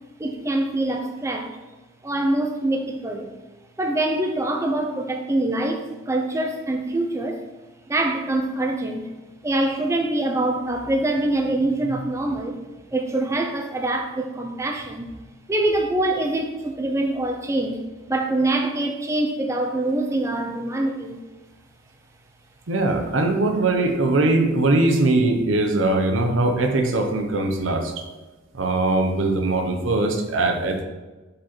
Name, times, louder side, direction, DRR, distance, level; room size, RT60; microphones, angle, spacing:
voice 1, 0.2-1.6 2.0-3.3 3.8-7.4 7.9-9.1 9.4-12.6 12.9-15.1 15.5-17.8 18.1-21.2, right 2 dB, 15° right, 3 dB, 0.4 m, -24 dB
voice 2, 22.7-27.9 28.5-30.8, right 2 dB, 85° right, 4 dB, 0.8 m, -21 dB
5.1 x 4.3 x 4.4 m, 1.2 s
head